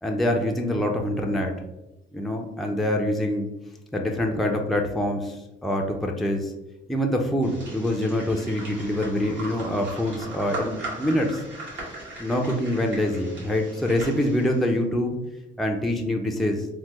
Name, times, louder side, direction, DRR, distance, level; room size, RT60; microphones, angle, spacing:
voice 1, 0.0-1.5 2.1-3.5 3.9-6.5 6.9-11.4 12.2-15.2 15.6-16.7, left 1 dB, ahead, 2 dB, 0.4 m, -25 dB
sound 1, 7.4-14.7, right 2 dB, 70° right, 1.4 m, -38 dB
3.3 x 2.0 x 3.0 m, 0.94 s
cardioid pair, 90°, 20 cm